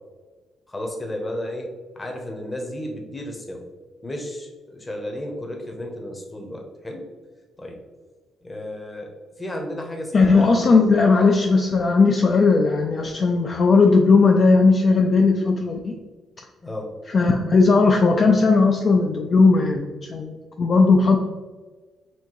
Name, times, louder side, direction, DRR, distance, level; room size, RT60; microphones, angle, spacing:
voice 1, 0.7-3.7 4.0-7.1 7.6-7.8 8.4-9.1 9.4-10.8 16.6-16.9, left 1 dB, 20° left, 2 dB, 0.9 m, -33 dB
voice 2, 10.1-15.9 17.1-21.2, left 4 dB, 45° left, 1 dB, 0.4 m, -17 dB
4.3 x 2.7 x 3.0 m, 1.3 s
cardioid pair, 90°, 0 cm